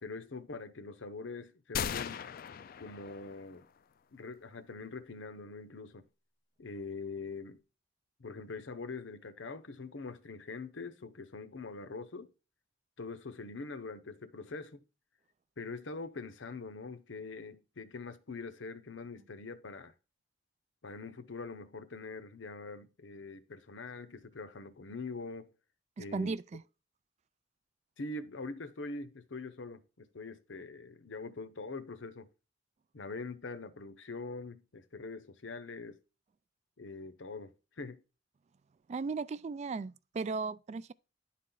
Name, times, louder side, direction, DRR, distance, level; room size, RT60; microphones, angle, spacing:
voice 1, 0.0-2.2 2.8-3.7 4.1-6.0 6.6-7.6 8.2-12.3 13.0-14.8 15.6-19.9 20.8-25.5 26.0-26.3 28.0-32.3 32.9-36.0 36.8-38.0, left 3 dB, 80° left, 0.8 m, -43 dB
sound 1, 1.7-3.6, left 8 dB, 50° left, 0.4 m, -38 dB
voice 2, 26.0-26.6 38.9-40.9, right 4 dB, 35° right, 0.3 m, -36 dB
10.5 x 4.3 x 3.9 m
head